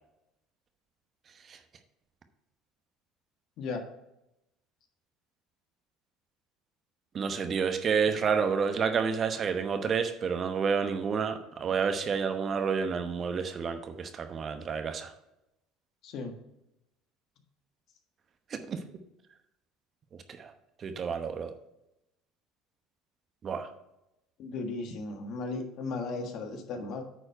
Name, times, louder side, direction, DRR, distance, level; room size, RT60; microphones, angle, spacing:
voice 1, 7.1-15.1 18.5-18.8 20.4-20.5 20.8-21.5 23.4-23.7, right 6 dB, 40° right, 8 dB, 0.9 m, -29 dB
voice 2, 16.0-16.4 24.4-27.0, left 3 dB, 60° left, 4 dB, 1.5 m, -36 dB
9.2 x 4.4 x 5.5 m, 0.87 s
supercardioid pair, 90°, 0 cm